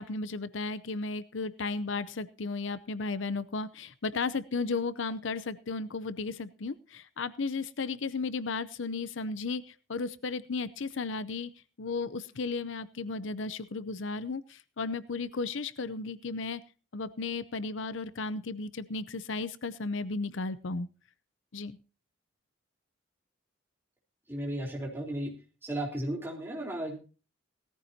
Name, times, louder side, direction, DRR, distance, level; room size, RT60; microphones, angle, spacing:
voice 1, 0.0-11.5 11.8-16.6 16.9-20.9 21.5-21.8, left 4 dB, 70° left, 15 dB, 0.7 m, -34 dB
voice 2, 24.3-25.3 25.6-26.9, right 1 dB, 10° right, -1 dB, 4.0 m, -34 dB
17.5 x 14.5 x 2.8 m, 0.35 s
head